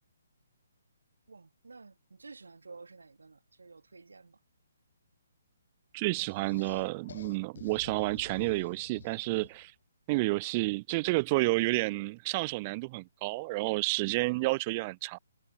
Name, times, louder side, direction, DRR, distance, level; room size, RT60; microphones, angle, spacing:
voice 1, 1.3-4.4, right 4 dB, 85° right, 2.9 m, -51 dB
voice 2, 5.9-9.7 10.1-15.2, right 24 dB, 30° right, 0.4 m, -30 dB
sound 1, 6.2-9.7, left 6 dB, 65° left, 1.4 m, -50 dB
hypercardioid pair, 150°, 0 cm